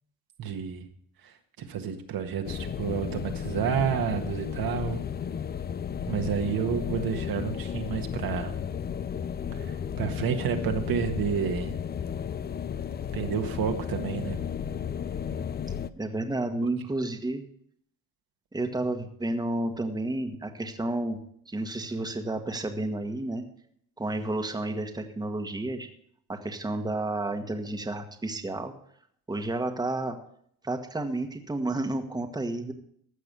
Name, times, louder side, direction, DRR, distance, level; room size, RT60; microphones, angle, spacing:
voice 1, 0.4-0.8 1.6-5.0 6.1-8.5 9.6-11.8 13.1-14.4, right 8 dB, 60° right, 4 dB, 1.6 m, -30 dB
sound 1, 2.4-15.9, left 8 dB, 25° left, 0.5 m, -33 dB
voice 2, 16.0-17.4 18.5-21.2 21.5-23.4 24.0-25.9 26.3-28.7 29.3-30.2 30.6-32.7, right 2 dB, 10° right, 5 dB, 1.4 m, -31 dB
15.0 x 5.9 x 6.8 m, 0.69 s
supercardioid pair, 85°, 40 cm